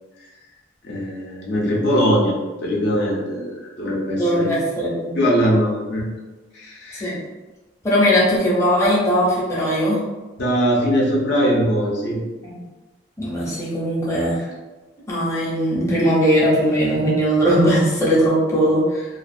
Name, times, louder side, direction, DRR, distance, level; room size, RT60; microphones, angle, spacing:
voice 1, 0.8-2.4 2.6-4.5 5.1-6.1 6.5-7.2 10.4-12.2, equal, 65° left, -4 dB, 0.6 m, -21 dB
voice 2, 4.2-5.1 6.9-7.2 7.8-10.0 12.4-12.6 13.2-14.5 15.1-19.0, equal, 15° left, -7 dB, 0.6 m, -19 dB
2.4 x 2.3 x 2.5 m, 1.2 s
head